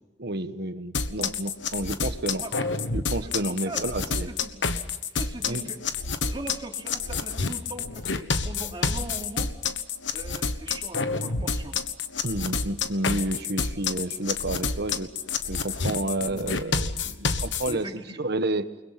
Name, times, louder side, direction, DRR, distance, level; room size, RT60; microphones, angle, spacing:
voice 1, 0.2-2.4 2.9-4.3 5.4-5.7 12.2-15.1 15.5-17.9 18.2-18.7, right 1 dB, 60° right, 10 dB, 1.3 m, -30 dB
sound 1, 0.9-17.7, left 4 dB, 75° left, 1.3 m, -29 dB
voice 2, 2.2-2.7 3.2-4.7 5.1-5.8 6.3-9.5 10.1-11.8 17.7-18.2, right 1 dB, 25° right, 1 dB, 3.1 m, -40 dB
29.5 x 21.0 x 5.9 m, 1.1 s
head